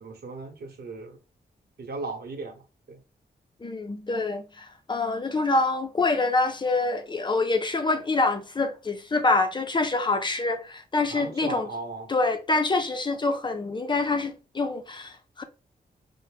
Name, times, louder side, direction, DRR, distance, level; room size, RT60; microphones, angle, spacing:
voice 1, 0.0-1.2 1.8-2.6 2.9-3.0 11.1-12.1, right 3 dB, 70° right, 1.0 m, -37 dB
voice 2, 3.6-11.7 12.1-15.4, left 3 dB, 25° left, 0.5 m, -26 dB
5.5 x 2.1 x 3.4 m
wide cardioid pair, 155°, 17 cm